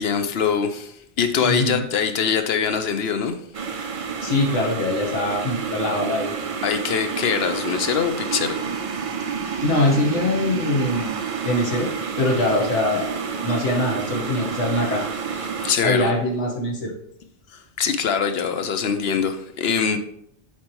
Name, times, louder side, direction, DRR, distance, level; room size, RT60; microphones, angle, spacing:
voice 1, 0.0-3.3 6.6-8.6 15.6-16.1 17.8-20.0, left 6 dB, 65° left, 0.8 m, -23 dB
voice 2, 1.4-1.8 4.2-6.3 9.6-11.1 11.4-11.9 12.2-13.1 13.4-15.0 15.8-16.9, left 2 dB, 80° left, 1.6 m, -23 dB
sound 1, 3.5-15.7, right 6 dB, 55° right, 0.4 m, -29 dB
7.4 x 4.5 x 3.0 m
omnidirectional pair, 1.2 m